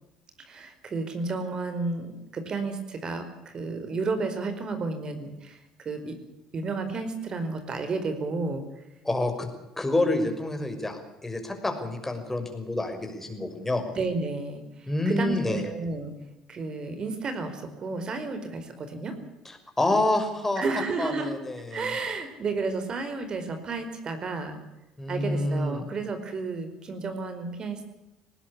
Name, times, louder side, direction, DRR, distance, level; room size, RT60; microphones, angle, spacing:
voice 1, 0.4-6.1 6.5-8.6 14.0-16.1 16.5-19.2 20.6-21.3 21.7-24.6 25.1-27.9, right 3 dB, 40° right, 8 dB, 4.7 m, -32 dB
voice 2, 9.0-9.5 9.8-13.8 14.9-15.6 19.5-20.6 21.0-21.9 25.0-25.9, left 2 dB, 15° left, 5 dB, 6.0 m, -28 dB
19.5 x 19.0 x 8.4 m, 0.98 s
hypercardioid pair, 65°, 2 cm